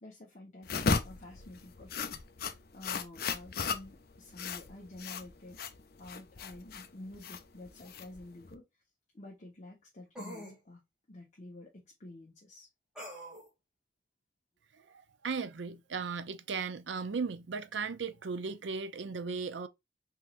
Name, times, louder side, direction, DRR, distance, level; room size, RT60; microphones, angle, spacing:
voice 1, 0.0-5.6 6.0-8.6 9.1-10.8 11.1-12.7, left 1 dB, 40° left, 1.2 m, -50 dB
sound 1, 0.6-8.5, left 5 dB, 60° left, 0.6 m, -36 dB
sound 2, 7.8-7.9 10.2-10.6 13.0-13.5, equal, 5° right, 1.9 m, -44 dB
voice 2, 14.9-19.7, right 5 dB, 85° right, 0.5 m, -36 dB
4.3 x 3.7 x 2.5 m
head